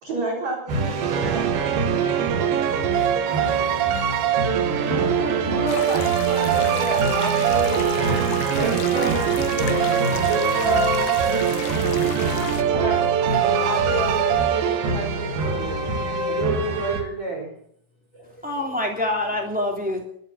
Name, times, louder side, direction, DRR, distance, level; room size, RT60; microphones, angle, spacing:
voice 1, 0.0-1.7 5.5-7.9 8.6-11.2 12.7-13.0 13.4-15.9 16.3-17.5, right 2 dB, 40° right, -3 dB, 5.0 m, -29 dB
sound 1, 0.7-17.0, right 2 dB, 60° right, 3.3 m, -27 dB
sound 2, 1.0-15.3, right 10 dB, 75° right, 3.4 m, -23 dB
voice 2, 4.2-5.4 8.3-8.4 15.6-16.2 16.8-16.9 18.1-18.7 19.3-19.4, left 1 dB, 25° left, -3 dB, 4.1 m, -40 dB
sound 3, 5.7-12.6, left 12 dB, 85° left, 3.4 m, -36 dB
voice 3, 18.4-20.0, left 1 dB, 5° right, 1 dB, 1.9 m, -26 dB
24.5 x 9.9 x 5.8 m, 0.66 s
omnidirectional pair, 5.3 m